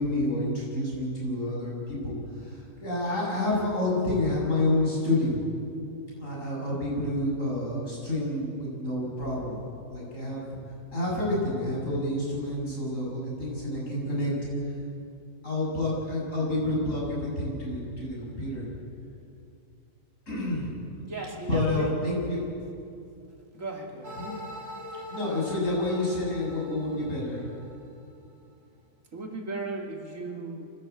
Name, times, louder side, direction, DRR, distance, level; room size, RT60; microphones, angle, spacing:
voice 1, 0.0-2.1 2.4-5.4 6.2-10.4 10.9-14.3 15.4-18.6 20.3-20.7 21.5-22.4 24.2-24.3 25.1-27.4, left 1 dB, 75° left, -4 dB, 8.0 m, -29 dB
voice 2, 21.0-21.9 23.5-24.2 29.1-30.7, right 3 dB, 70° right, 1 dB, 2.9 m, -36 dB
sound 1, 24.0-28.0, left 1 dB, 50° right, 3.0 m, -42 dB
25.0 x 17.5 x 8.3 m, 2.5 s
omnidirectional pair, 1.4 m